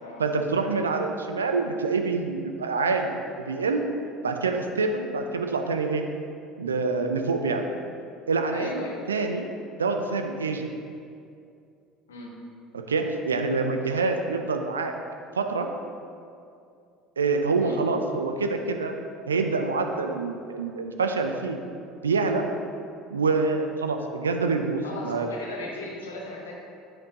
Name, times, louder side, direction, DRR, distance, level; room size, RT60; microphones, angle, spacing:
voice 1, 0.2-3.8 4.2-6.1 6.6-7.7 8.3-8.8 9.1-9.5 9.8-10.7 12.7-14.9 15.4-15.7 17.2-19.0 19.3-21.6 22.0-22.4 23.1-25.3, right 4 dB, 80° right, 5 dB, 0.4 m, -26 dB
voice 2, 8.5-8.9 12.1-12.3 17.6-17.8 24.8-26.5, left 2 dB, 75° left, -2 dB, 1.1 m, -37 dB
7.2 x 5.3 x 2.7 m, 2.5 s
figure-of-eight pair, 65°, 0 cm